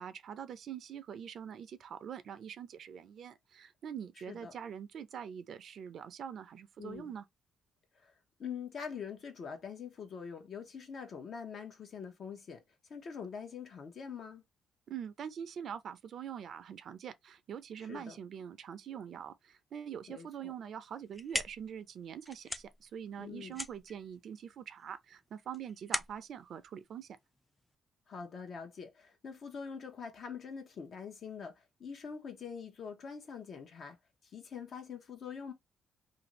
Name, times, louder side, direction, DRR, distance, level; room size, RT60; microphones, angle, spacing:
voice 1, 0.0-7.3 14.9-27.2, right 8 dB, 65° right, 0.5 m, -44 dB
voice 2, 6.8-7.1 8.0-8.1 8.4-12.6 12.9-14.4 17.9-18.2 20.1-20.5 23.2-23.6 28.1-34.0 34.3-35.5, left 6 dB, 55° left, 0.8 m, -44 dB
sound 1, 20.9-27.8, left 1 dB, 10° left, 0.4 m, -42 dB
2.6 x 2.6 x 2.9 m
cardioid pair, 90°, 0 cm